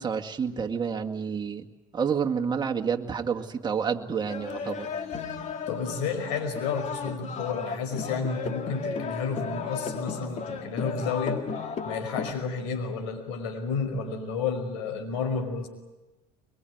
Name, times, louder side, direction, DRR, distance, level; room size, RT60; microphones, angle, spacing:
voice 1, 0.0-1.7 1.9-4.9, right 6 dB, 25° right, 4 dB, 2.1 m, -29 dB
sound 1, 4.3-12.3, left 5 dB, 45° left, 2.6 m, -34 dB
voice 2, 5.7-11.4 11.9-15.7, left 5 dB, 80° left, 6 dB, 5.3 m, -31 dB
23.5 x 22.5 x 9.5 m, 1.1 s
hypercardioid pair, 80°, 16 cm